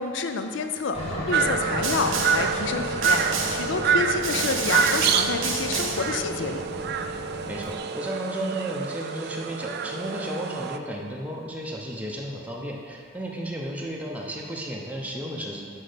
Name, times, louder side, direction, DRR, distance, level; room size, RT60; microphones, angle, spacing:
voice 1, 0.0-6.6, left 4 dB, 65° left, 7 dB, 0.4 m, -29 dB
Aircraft, 0.9-7.8, equal, 35° left, 1.7 m, -36 dB
sound 1, 1.3-10.8, right 6 dB, 55° right, 0.3 m, -27 dB
Snare drum, 1.8-2.5 3.0-3.7 4.2-6.1, right 5 dB, 85° right, 0.9 m, -29 dB
voice 2, 7.5-15.7, right 1 dB, 10° right, -2 dB, 0.6 m, -33 dB
6.1 x 5.4 x 5.0 m, 2.3 s
head